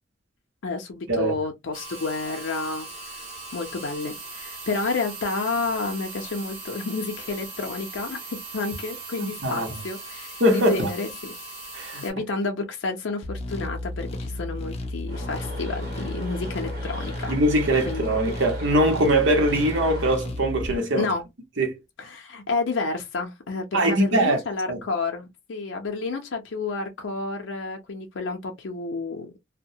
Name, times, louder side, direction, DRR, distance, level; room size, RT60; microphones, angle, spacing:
voice 1, 0.6-3.2 3.5-11.3 12.0-17.3 17.9-18.2 21.0-21.2 22.0-29.4, left 3 dB, 85° left, 0.5 m, -30 dB
sound 1, 1.7-12.1, right 3 dB, 30° right, 0.9 m, -39 dB
voice 2, 9.2-9.7 10.4-10.9 11.7-12.0 17.3-21.1 21.6-21.7 23.7-24.4 24.7-24.8, right 1 dB, 80° right, 0.9 m, -22 dB
sound 2, 13.2-20.8, left 1 dB, 35° left, 0.5 m, -33 dB
sound 3, 15.1-20.2, right 1 dB, 55° right, 1.0 m, -39 dB
2.2 x 2.1 x 2.6 m
head